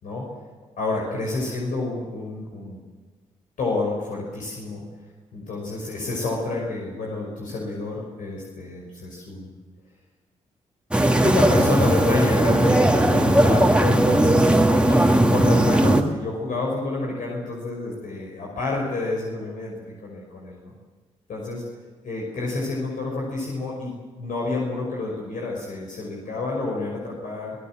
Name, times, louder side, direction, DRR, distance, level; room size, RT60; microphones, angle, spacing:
voice 1, 0.8-2.8 3.6-4.8 5.3-9.5 11.2-19.7 20.0-20.7 21.3-21.6 22.0-27.6, left 2 dB, 70° left, -2 dB, 5.8 m, -28 dB
sound 1, 10.9-16.0, right 1 dB, 5° right, 2.5 m, -18 dB
25.5 x 19.0 x 7.7 m, 1.4 s
supercardioid pair, 50°, 14 cm